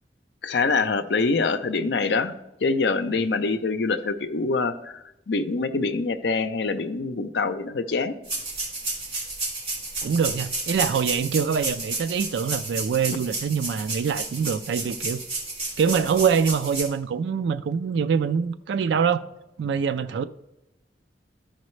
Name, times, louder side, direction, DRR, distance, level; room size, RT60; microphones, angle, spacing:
voice 1, 0.4-2.3 2.6-5.0 5.3-8.1, left 4 dB, 75° left, 0.6 m, -25 dB
sound 1, 8.2-16.8, right 2 dB, 35° right, 3.2 m, -31 dB
voice 2, 10.0-15.2 15.8-19.2 19.6-20.2, right 6 dB, 80° right, 0.3 m, -24 dB
13.0 x 5.1 x 3.2 m
head